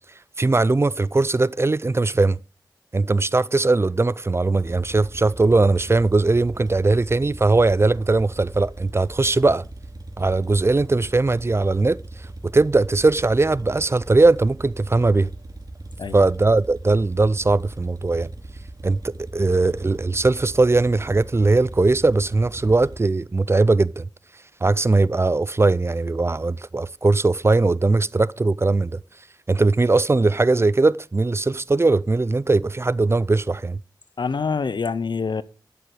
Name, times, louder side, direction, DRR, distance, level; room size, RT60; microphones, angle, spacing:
voice 1, 0.4-2.4 2.9-9.6 10.2-12.0 12.5-15.3 16.1-18.3 18.8-24.1 24.6-29.0 29.5-33.8, right 3 dB, 35° right, 0.4 m, -19 dB
sound 1, 4.6-23.1, right 2 dB, 50° right, 2.5 m, -39 dB
voice 2, 34.2-35.4, left 5 dB, 75° left, 0.6 m, -25 dB
12.0 x 6.9 x 4.8 m
wide cardioid pair, 50°, 8 cm